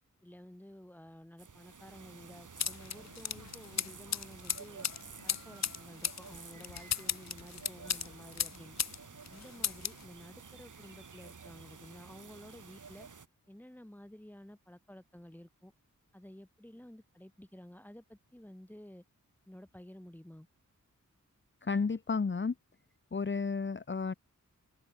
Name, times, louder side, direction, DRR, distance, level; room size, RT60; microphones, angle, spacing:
voice 1, 0.2-4.9 5.2-8.8 9.3-13.1 13.5-15.7 16.1-19.0 19.5-20.5, left 1 dB, 5° left, 3.2 m, -52 dB
sound 1, 1.4-13.3, right 5 dB, 70° right, 5.3 m, -52 dB
sound 2, 2.6-9.0 9.2-10.0, left 8 dB, 55° left, 0.7 m, -36 dB
voice 2, 21.6-22.5 23.1-24.1, left 4 dB, 35° left, 1.1 m, -32 dB
open air
wide cardioid pair, 115°, 32 cm